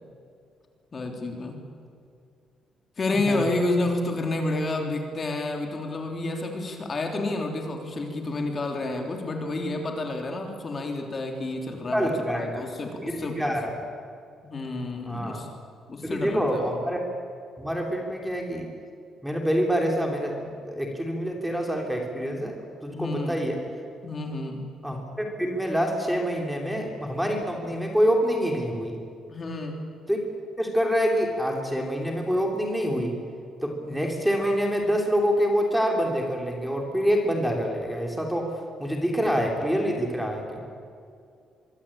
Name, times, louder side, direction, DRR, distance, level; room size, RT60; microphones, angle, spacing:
voice 1, 0.9-1.6 3.0-13.4 14.4-15.5 15.9-16.7 22.9-23.4 24.0-24.7 29.3-29.8, left 2 dB, 25° left, 3 dB, 3.5 m, -30 dB
voice 2, 3.1-3.4 11.9-12.6 13.0-13.7 15.0-15.4 16.0-17.0 17.6-18.7 19.2-22.5 22.8-23.6 24.8-29.0 30.1-30.2 30.6-33.2 33.6-40.6, equal, ahead, 1 dB, 3.2 m, -26 dB
24.5 x 24.0 x 8.8 m, 2.4 s
cardioid pair, 170°, 0 cm